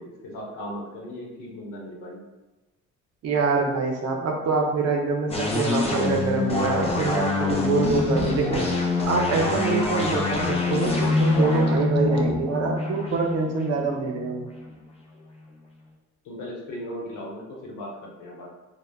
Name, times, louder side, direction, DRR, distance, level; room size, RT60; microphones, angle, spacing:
voice 1, 0.0-2.2 16.2-18.5, equal, 85° left, -2 dB, 0.8 m, -37 dB
voice 2, 3.2-8.6 9.0-14.4, right 4 dB, 60° right, 1 dB, 0.6 m, -25 dB
sound 1, 5.3-14.7, left 3 dB, 20° left, 0.5 m, -25 dB
3.3 x 2.1 x 2.2 m, 1.1 s
cardioid pair, 90°, 30 cm